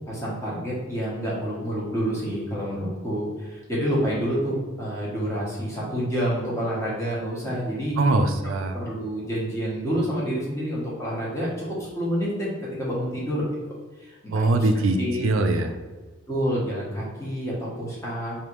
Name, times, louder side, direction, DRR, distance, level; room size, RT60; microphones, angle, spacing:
voice 1, 0.1-8.0 8.7-12.5 12.8-13.4 14.0-14.7 15.0-15.2 16.3-18.4, equal, 15° left, -6 dB, 1.3 m, -28 dB
voice 2, 8.0-8.8 14.3-15.8, right 2 dB, 75° right, 6 dB, 0.4 m, -22 dB
3.4 x 2.7 x 4.5 m, 1.3 s
head